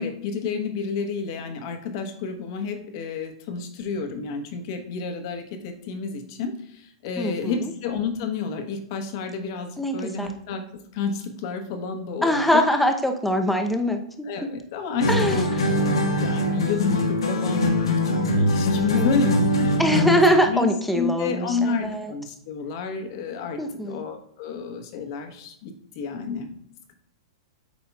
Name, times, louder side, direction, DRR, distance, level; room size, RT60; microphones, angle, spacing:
voice 1, 0.0-10.6 10.9-12.6 14.2-15.9 16.2-17.7 18.1-19.3 19.6-19.8 20.5-20.7 20.9-23.6 23.9-26.5, left 5 dB, 55° left, 5 dB, 1.2 m, -30 dB
voice 2, 7.2-7.7 9.8-10.3 12.2-14.5 15.1-15.7 19.0-19.5 19.8-22.1 23.6-24.0, equal, ahead, 4 dB, 0.7 m, -23 dB
sound 1, 15.0-20.3, left 1 dB, 85° left, 1.2 m, -22 dB
8.3 x 5.0 x 2.4 m, 0.70 s
hypercardioid pair, 120°, 3 cm